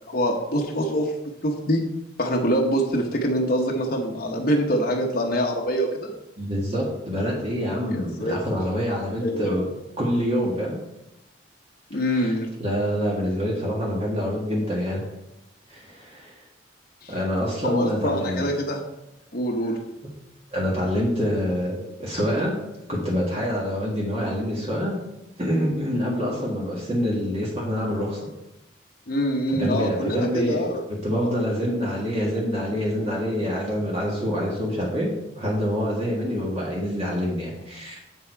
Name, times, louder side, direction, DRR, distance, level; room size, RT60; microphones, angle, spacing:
voice 1, 0.1-1.1 1.4-1.8 2.2-6.1 7.9-8.4 9.2-9.6 11.9-12.5 17.0-17.2 17.6-18.8 19.3-19.8 29.1-30.8 31.2-31.3, equal, 50° left, 0 dB, 1.0 m, -25 dB
voice 2, 6.4-9.6 10.0-10.8 12.1-12.3 12.6-15.0 15.7-16.3 17.1-18.5 20.5-22.5 22.9-25.0 25.4-28.2 29.5-30.7 31.0-35.1 35.4-38.0, equal, 35° right, -4 dB, 1.8 m, -26 dB
7.9 x 7.3 x 4.6 m, 0.90 s
head